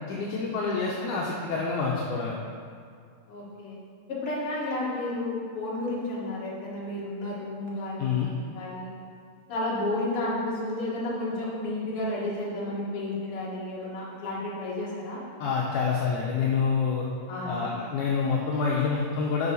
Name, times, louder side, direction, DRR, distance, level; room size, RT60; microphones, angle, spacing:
voice 1, 0.1-2.4 8.0-8.3 15.4-17.1 17.5-19.5, left 5 dB, 75° left, -3 dB, 2.1 m, -27 dB
voice 2, 3.3-3.8 4.1-8.9 9.5-15.2 17.3-17.7, left 1 dB, 45° left, -6 dB, 2.4 m, -32 dB
8.3 x 5.5 x 5.5 m, 2.2 s
omnidirectional pair, 3.9 m